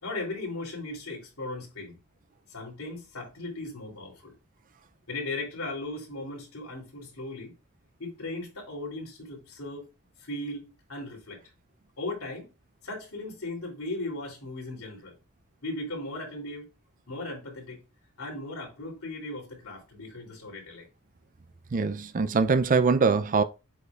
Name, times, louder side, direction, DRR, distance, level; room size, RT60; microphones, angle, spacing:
voice 1, 0.0-2.0 2.5-4.3 5.1-7.5 8.0-9.9 10.2-11.4 12.0-12.5 12.8-15.1 15.6-16.7 17.1-17.8 18.2-20.9, left 2 dB, 75° left, 3.2 m, -37 dB
voice 2, 21.7-23.4, right 4 dB, 35° right, 0.4 m, -23 dB
8.0 x 5.3 x 2.4 m
head